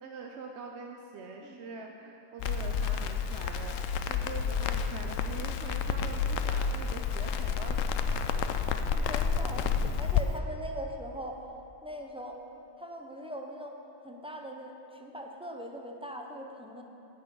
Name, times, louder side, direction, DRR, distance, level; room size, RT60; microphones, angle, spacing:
voice 1, 0.0-8.5, right 4 dB, 60° right, 2 dB, 0.9 m, -44 dB
Crackle, 2.4-10.2, left 6 dB, 75° left, 0.9 m, -30 dB
voice 2, 8.9-9.7 10.0-11.4 11.8-12.4 12.8-13.8 14.0-16.8, equal, 5° right, 1 dB, 0.4 m, -41 dB
10.5 x 6.0 x 7.7 m, 2.9 s
omnidirectional pair, 1.4 m